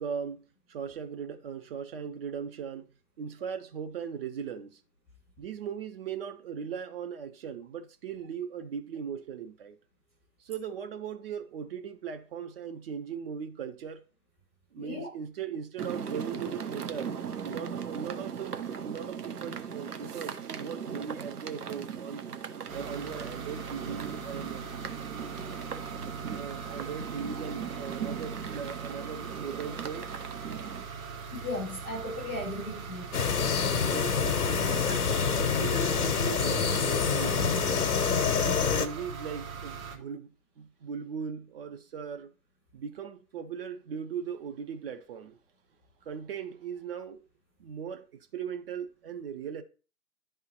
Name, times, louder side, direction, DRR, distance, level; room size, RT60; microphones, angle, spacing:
voice 1, 0.0-2.9 3.2-4.8 5.4-9.8 10.4-14.0 14.7-17.1 17.4-22.3 22.7-24.6 26.4-30.1 33.9-37.6 38.7-40.3 40.6-42.3 42.7-45.4 46.1-47.2 47.6-49.6, right 7 dB, 40° right, 0.7 m, -39 dB
voice 2, 14.8-15.1 31.3-33.1, left 1 dB, 10° left, 0.4 m, -36 dB
sound 1, 15.8-30.8, right 7 dB, 75° right, 0.8 m, -39 dB
sound 2, 22.7-40.0, right 5 dB, 60° right, 1.4 m, -41 dB
sound 3, 33.1-38.9, left 6 dB, 70° left, 0.9 m, -26 dB
11.0 x 3.7 x 2.8 m
figure-of-eight pair, 120°, 46 cm